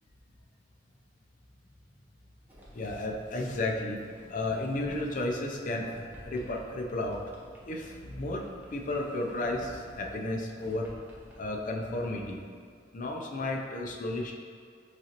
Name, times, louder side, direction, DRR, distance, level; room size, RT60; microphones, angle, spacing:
Sliding door, 2.5-12.1, equal, 10° right, 0.6 m, -52 dB
voice 1, 2.7-4.0 4.3-7.2 7.7-8.5 8.7-10.9 11.4-12.4 12.9-14.3, left 2 dB, 45° left, 1 dB, 0.5 m, -33 dB
7.2 x 2.5 x 2.8 m, 2.2 s
head